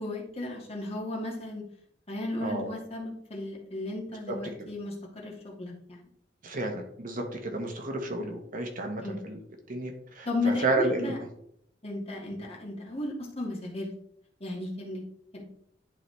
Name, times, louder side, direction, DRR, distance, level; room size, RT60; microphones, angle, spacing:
voice 1, 0.0-1.6 2.1-6.0 9.0-9.2 10.3-11.2 11.8-13.9 14.4-15.0 15.3-15.4, left 2 dB, 35° left, -2 dB, 1.8 m, -34 dB
voice 2, 2.4-2.7 4.6-4.7 6.4-9.4 9.7-11.1, right 2 dB, 50° right, 3 dB, 1.2 m, -31 dB
11.0 x 3.9 x 3.2 m, 0.71 s
head